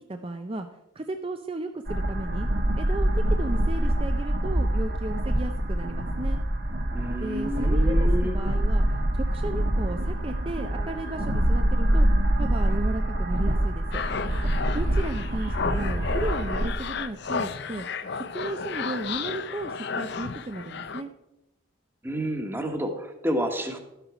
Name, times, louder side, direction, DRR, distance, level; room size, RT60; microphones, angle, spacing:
voice 1, 0.1-0.7 0.9-2.5 2.8-6.4 7.2-8.8 9.1-12.1 12.4-14.0 14.7-17.9 18.3-21.1, right 2 dB, 25° right, 6 dB, 0.5 m, -34 dB
sound 1, 1.9-16.7, right 1 dB, 50° right, 1.4 m, -25 dB
voice 2, 6.9-8.4 22.0-23.8, equal, 10° right, 4 dB, 1.3 m, -29 dB
sound 2, 13.9-21.0, left 5 dB, 55° left, 0.5 m, -33 dB
12.5 x 8.2 x 4.9 m, 0.91 s
head